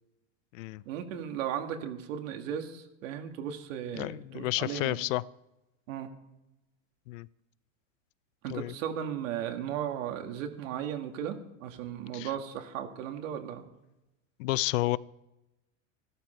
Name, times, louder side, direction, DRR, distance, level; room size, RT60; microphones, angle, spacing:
voice 1, 0.9-5.0 5.9-6.1 8.4-13.7, right 9 dB, 75° right, 5 dB, 2.1 m, -36 dB
voice 2, 4.0-5.2 7.1-7.3 8.5-8.7 12.1-12.3 14.4-15.0, left 19 dB, 70° left, 20 dB, 0.6 m, -30 dB
15.0 x 12.5 x 4.5 m, 0.95 s
supercardioid pair, 160°, 40 cm